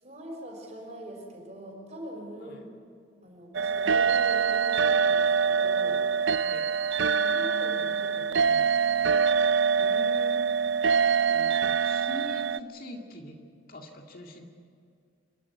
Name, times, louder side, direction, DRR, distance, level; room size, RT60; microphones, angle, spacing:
voice 1, 0.0-2.7 3.2-6.1 7.1-8.9, right 1 dB, 35° right, -1 dB, 5.9 m, -42 dB
sound 1, 3.5-12.6, right 6 dB, 65° right, 0.5 m, -24 dB
voice 2, 9.8-10.5 11.3-13.4 13.7-14.4, left 1 dB, 45° left, 2 dB, 2.0 m, -43 dB
27.0 x 12.5 x 9.5 m, 2.3 s
head